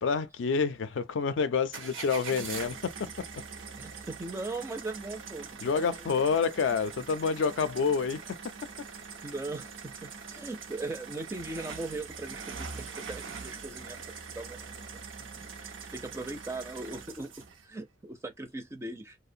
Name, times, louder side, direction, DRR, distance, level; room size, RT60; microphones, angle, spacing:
voice 1, 0.0-3.3 5.6-8.2, left 5 dB, 75° left, 0.4 m, -28 dB
sound 1, 1.7-17.6, right 5 dB, 90° right, 0.6 m, -43 dB
voice 2, 3.8-6.1 9.2-15.0 15.6-17.3 17.6-19.2, right 2 dB, 15° right, 0.4 m, -39 dB
2.4 x 2.1 x 2.6 m
head